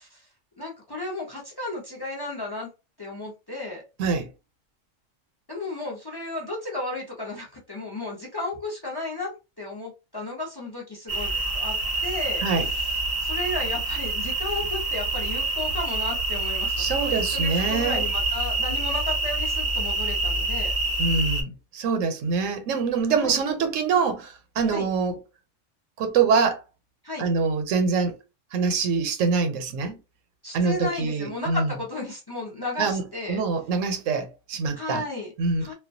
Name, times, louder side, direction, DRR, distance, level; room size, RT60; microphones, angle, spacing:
voice 1, 0.6-2.7 3.0-3.8 5.5-12.9 13.2-20.7 23.1-23.4 24.7-24.9 27.0-27.3 30.4-33.4 34.7-35.3 35.6-35.7, left 2 dB, 30° left, 0.4 m, -34 dB
sound 1, 11.1-21.4, right 2 dB, 45° right, 0.6 m, -27 dB
voice 2, 16.8-18.1 21.0-25.2 26.0-26.6 27.2-28.2 28.5-30.0 30.5-31.7 32.8-35.0 35.4-35.7, right 5 dB, 80° right, 1.0 m, -25 dB
2.3 x 2.2 x 2.5 m
omnidirectional pair, 1.3 m